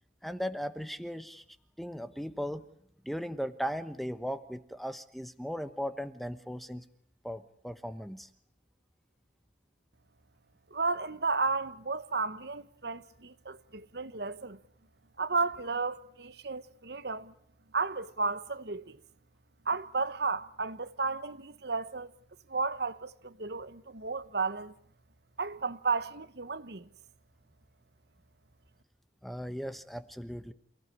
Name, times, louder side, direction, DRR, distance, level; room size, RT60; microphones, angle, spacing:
voice 1, 0.2-1.4 1.8-2.6 3.0-6.9 7.2-8.3 29.2-30.5, equal, ahead, 1.1 m, -37 dB
voice 2, 10.7-14.6 15.2-17.3 17.7-19.0 19.7-22.1 22.5-24.7 25.4-26.9, right 4 dB, 60° right, 1.1 m, -33 dB
28.5 x 18.0 x 9.8 m
head